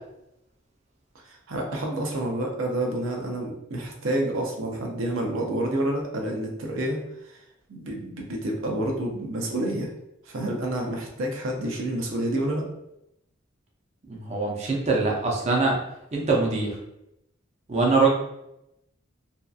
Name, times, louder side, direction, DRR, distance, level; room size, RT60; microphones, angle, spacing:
voice 1, 1.2-7.4 7.7-9.9 10.2-12.6, right 1 dB, 90° right, 0 dB, 0.5 m, -29 dB
voice 2, 14.1-15.8 16.1-16.7 17.7-18.1, right 3 dB, 35° right, -2 dB, 0.5 m, -23 dB
2.7 x 2.3 x 2.3 m, 0.83 s
head